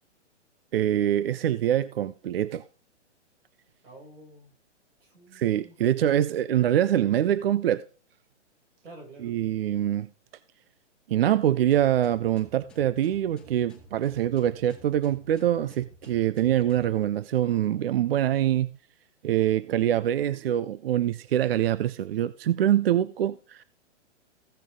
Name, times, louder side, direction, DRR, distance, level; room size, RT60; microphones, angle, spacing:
voice 1, 0.7-2.6 5.3-7.8 9.2-10.1 11.1-18.8 19.2-23.6, right 11 dB, 55° right, 0.5 m, -24 dB
voice 2, 3.8-4.5 5.0-6.2 8.8-9.4, right 2 dB, 80° right, 6.3 m, -49 dB
sound 1, 11.7-17.0, right 1 dB, 5° left, 2.4 m, -52 dB
16.0 x 6.2 x 3.6 m
hypercardioid pair, 155°, 36 cm